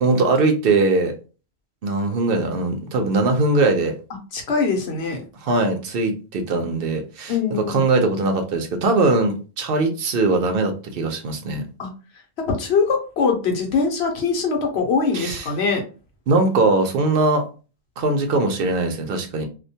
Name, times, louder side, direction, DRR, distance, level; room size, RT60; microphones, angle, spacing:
voice 1, 0.0-1.1 1.8-3.9 5.4-11.6 15.1-15.5 16.3-17.4 18.0-19.5, right 3 dB, 65° right, 5 dB, 0.7 m, -21 dB
voice 2, 4.3-5.2 7.3-7.9 11.8-11.9 12.4-15.8, left 5 dB, 85° left, 3 dB, 1.0 m, -22 dB
2.3 x 2.2 x 2.7 m, 0.34 s
omnidirectional pair, 1.1 m